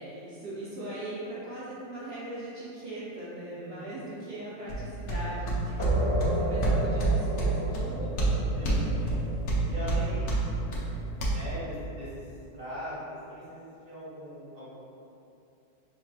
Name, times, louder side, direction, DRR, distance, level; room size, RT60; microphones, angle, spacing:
voice 1, 0.0-8.3, right 1 dB, 60° right, -11 dB, 0.6 m, -40 dB
voice 2, 3.5-4.1 8.5-9.2 9.7-10.8 11.3-14.7, equal, 25° right, -9 dB, 1.0 m, -41 dB
sound 1, 4.7-11.3, right 2 dB, 55° left, 1.0 m, -28 dB
sound 2, 5.8-11.1, equal, 15° left, 1.2 m, -33 dB
5.7 x 3.3 x 2.4 m, 2.8 s
omnidirectional pair, 2.0 m